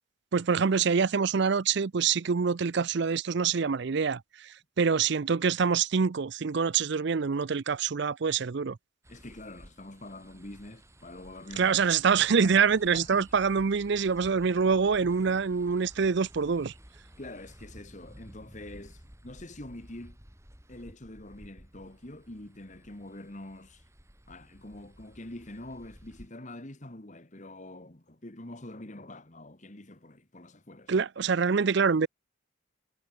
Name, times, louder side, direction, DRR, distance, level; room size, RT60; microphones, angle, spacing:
voice 1, 0.3-4.5 4.8-8.8 11.6-16.7 30.9-32.1, right 5 dB, 55° right, 0.5 m, -25 dB
sound 1, 9.0-26.3, equal, 15° right, 5.3 m, -54 dB
voice 2, 9.1-11.7 12.4-13.3 17.2-20.2 20.7-23.8 24.3-30.9, left 1 dB, 35° left, 1.7 m, -45 dB
head